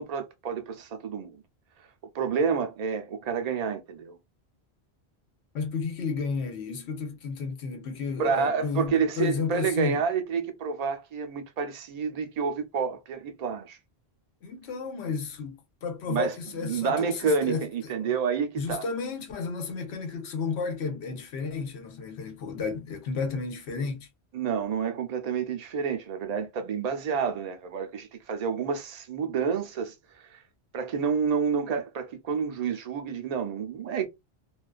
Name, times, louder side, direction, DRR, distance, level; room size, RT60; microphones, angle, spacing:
voice 1, 0.0-1.4 2.1-4.2 8.2-13.8 16.1-18.9 24.3-30.4 30.7-34.1, right 6 dB, 50° right, 0.5 m, -29 dB
voice 2, 5.5-10.0 14.4-17.7 18.0-18.1 18.6-24.1, left 5 dB, 90° left, 1.0 m, -32 dB
2.4 x 2.3 x 2.3 m
omnidirectional pair, 1.1 m